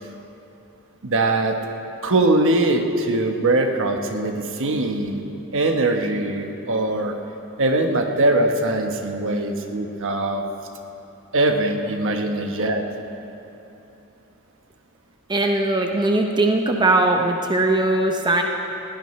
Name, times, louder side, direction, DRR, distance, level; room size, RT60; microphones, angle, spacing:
voice 1, 1.0-1.6 2.0-5.2 5.5-7.1 7.6-10.5 11.3-12.9, right 2 dB, 60° right, 4 dB, 1.1 m, -21 dB
voice 2, 15.3-18.4, right 2 dB, 20° right, 2 dB, 0.7 m, -20 dB
20.5 x 16.5 x 3.2 m, 3.0 s
head